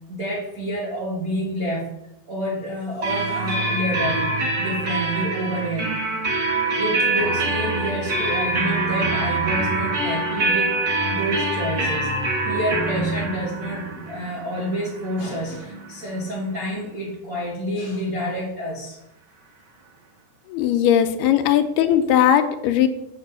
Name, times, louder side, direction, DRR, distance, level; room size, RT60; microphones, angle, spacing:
voice 1, 0.1-1.9 2.3-6.0 6.8-10.7 11.1-12.1 12.4-19.0, equal, 80° right, -4 dB, 0.8 m, -28 dB
sound 1, 3.0-16.6, right 2 dB, 60° right, 1.1 m, -25 dB
voice 2, 20.5-22.9, left 10 dB, 90° left, 8 dB, 2.6 m, -18 dB
7.4 x 6.1 x 7.8 m, 0.84 s
omnidirectional pair, 4.6 m